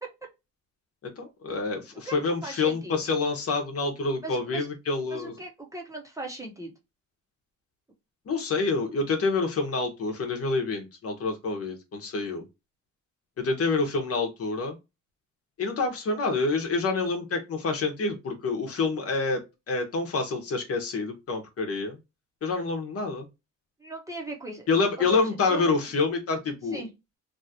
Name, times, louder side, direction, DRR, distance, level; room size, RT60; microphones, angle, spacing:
voice 1, 1.0-5.3 8.3-12.4 13.4-14.7 15.6-22.0 22.4-23.3 24.7-26.8, left 3 dB, 50° left, 1.0 m, -27 dB
voice 2, 2.0-3.0 4.2-4.7 5.1-6.7 23.8-24.7 25.0-25.7 26.7-26.9, right 2 dB, 10° right, 0.9 m, -38 dB
2.8 x 2.4 x 2.7 m
cardioid pair, 90°, 30 cm